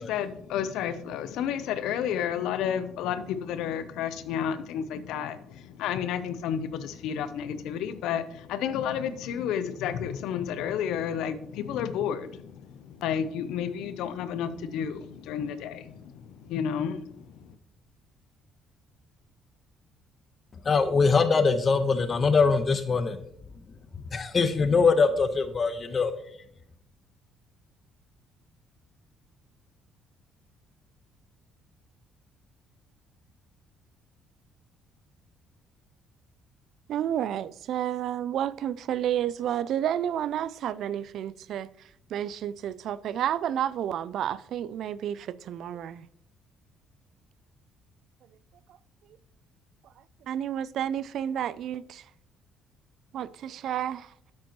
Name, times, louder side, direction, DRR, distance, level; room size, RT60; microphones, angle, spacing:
voice 1, 0.0-17.5, left 8 dB, 80° left, 0.6 m, -31 dB
voice 2, 20.6-23.2 24.1-26.1, left 4 dB, 35° left, 1.0 m, -22 dB
voice 3, 36.9-41.7 42.1-46.1 50.3-52.0 53.1-54.1, right 10 dB, 65° right, 0.3 m, -30 dB
8.8 x 7.4 x 3.0 m
supercardioid pair, 80°, 0 cm